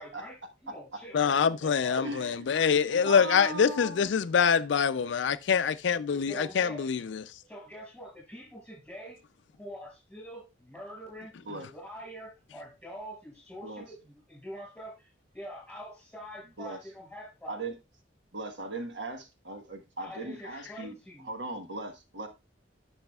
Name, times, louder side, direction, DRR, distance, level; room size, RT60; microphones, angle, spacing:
voice 1, 0.0-2.1 2.9-3.3 6.3-6.9 7.5-9.2 9.5-11.3 11.6-17.6 20.0-21.4, equal, 5° left, 5.4 m, -45 dB
voice 2, 1.1-7.2, left 6 dB, 70° left, 0.4 m, -25 dB
voice 3, 2.0-2.5 3.0-4.1 11.5-11.7 13.6-13.8 16.6-16.8 17.5-17.7 18.3-20.9 21.2-22.3, right 2 dB, 75° right, 1.3 m, -38 dB
12.0 x 6.3 x 2.3 m
head